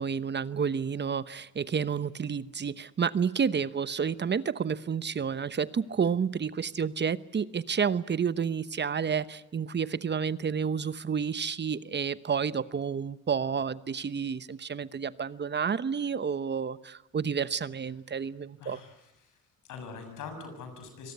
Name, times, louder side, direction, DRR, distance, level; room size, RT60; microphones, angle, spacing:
voice 1, 0.0-18.8, right 6 dB, 35° right, 15 dB, 1.0 m, -30 dB
voice 2, 18.6-19.4 19.6-21.1, left 5 dB, 85° left, 7 dB, 7.0 m, -43 dB
25.0 x 19.0 x 9.7 m, 1.0 s
cardioid pair, 90°, 30 cm